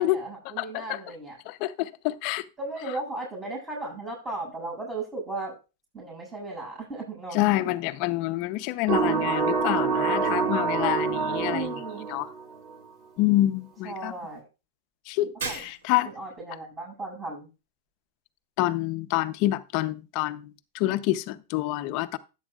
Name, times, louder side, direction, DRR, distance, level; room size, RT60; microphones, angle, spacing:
voice 1, 0.0-1.4 2.6-5.6 5.9-7.6 11.5-12.1 13.8-14.5 15.3-15.7 16.0-17.5, right 2 dB, 20° right, 7.0 m, -36 dB
voice 2, 0.6-1.0 1.5-2.4 7.3-11.7 12.1-12.3 13.2-14.1 15.1-16.1 18.6-22.2, left 16 dB, 50° left, 0.7 m, -27 dB
sound 1, 8.9-12.8, right 5 dB, 35° right, 4.0 m, -26 dB
Shatter, 15.4-16.2, right 4 dB, 85° right, 3.4 m, -36 dB
13.0 x 9.1 x 2.4 m
hypercardioid pair, 120°, 0 cm